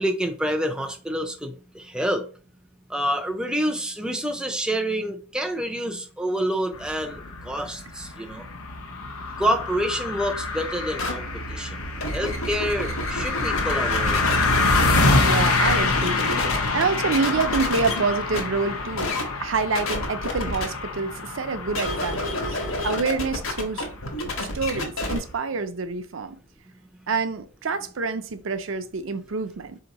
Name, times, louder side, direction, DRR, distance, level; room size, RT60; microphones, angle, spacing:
voice 1, 0.0-2.2 2.9-8.4 9.4-11.8 12.1-14.2, equal, 5° right, 0.4 m, -27 dB
sound 1, 6.7-25.3, left 3 dB, 85° left, 0.8 m, -26 dB
sound 2, 11.0-11.1 11.8-14.9 15.3-16.8 17.1-18.0 18.3-18.4 19.0-19.2 19.7-20.6 21.7-25.2, left 2 dB, 70° left, 1.2 m, -29 dB
voice 2, 15.1-22.6 22.8-23.9 24.4-26.4 27.1-29.8, right 4 dB, 60° right, 0.5 m, -27 dB
4.3 x 2.9 x 3.9 m
head